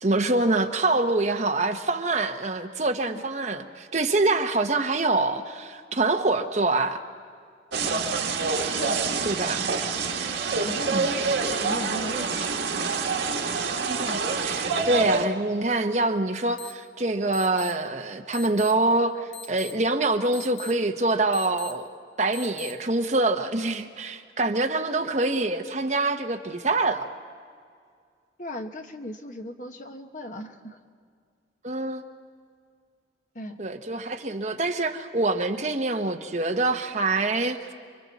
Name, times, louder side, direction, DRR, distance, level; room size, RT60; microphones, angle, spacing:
voice 1, 0.0-7.0 9.2-9.6 10.9-11.1 13.8-21.9 22.2-27.1 31.6-32.0 33.6-37.7, right 2 dB, 40° right, 5 dB, 1.0 m, -25 dB
sound 1, 7.7-15.3, right 4 dB, 80° right, 1.7 m, -27 dB
voice 2, 10.1-12.9 28.4-30.8 33.3-33.6 35.5-35.7, left 1 dB, 45° left, 5 dB, 1.2 m, -38 dB
sound 2, 16.6-16.7 17.3-17.7 18.3-18.7 19.3-19.7 20.3-20.7 21.3-21.7 22.3-22.7, left 7 dB, 80° left, 2.0 m, -40 dB
29.0 x 23.0 x 4.2 m, 2.1 s
head